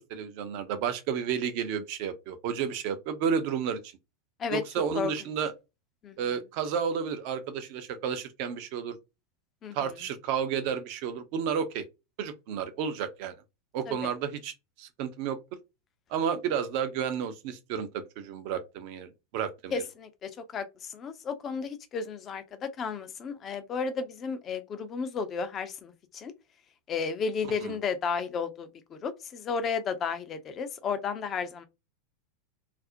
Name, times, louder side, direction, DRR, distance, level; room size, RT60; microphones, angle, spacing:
voice 1, 0.0-3.9 4.5-5.5 6.2-9.0 9.7-11.8 12.2-13.3 13.7-15.4 16.1-19.8 27.6-27.8, right 7 dB, 50° right, 0.5 m, -31 dB
voice 2, 19.7-26.3 26.9-31.7, left 5 dB, 30° left, 0.4 m, -33 dB
2.4 x 2.0 x 2.5 m
figure-of-eight pair, 85°, 0 cm